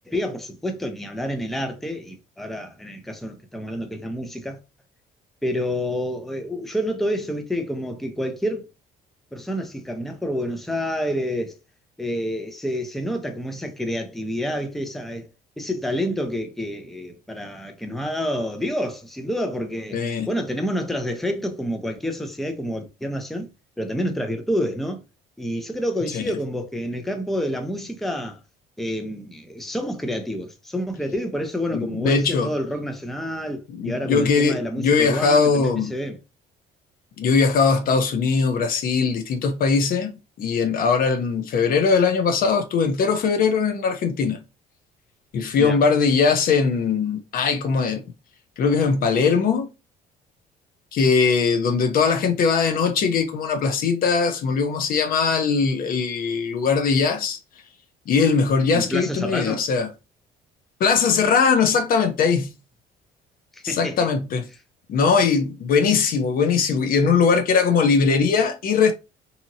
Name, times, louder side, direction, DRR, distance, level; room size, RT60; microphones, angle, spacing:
voice 1, 0.1-4.6 5.4-8.7 9.3-11.6 12.0-15.3 15.6-23.5 23.8-25.0 25.4-28.4 28.8-36.2 45.6-45.8 58.7-59.6 63.5-63.9, equal, ahead, 0.5 m, -28 dB
voice 2, 19.9-20.3 26.1-26.3 31.7-32.5 33.7-35.9 37.2-40.1 40.4-44.4 45.3-48.0 48.6-49.7 50.9-57.4 58.1-59.9 60.8-62.5 63.6-64.5 64.9-68.9, left 5 dB, 60° left, 0.6 m, -20 dB
2.8 x 2.7 x 2.6 m
cardioid pair, 110°, 17 cm